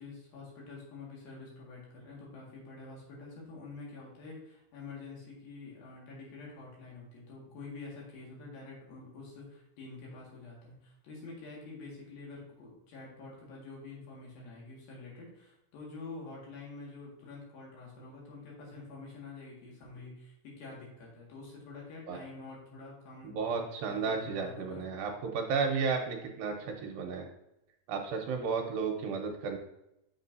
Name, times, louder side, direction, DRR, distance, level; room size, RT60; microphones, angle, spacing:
voice 1, 0.0-23.4 23.8-24.8, left 3 dB, 70° left, -3 dB, 3.6 m, -47 dB
voice 2, 23.2-27.3 27.9-29.6, right 5 dB, 80° right, 3 dB, 2.4 m, -33 dB
7.3 x 6.9 x 2.7 m, 0.83 s
omnidirectional pair, 4.4 m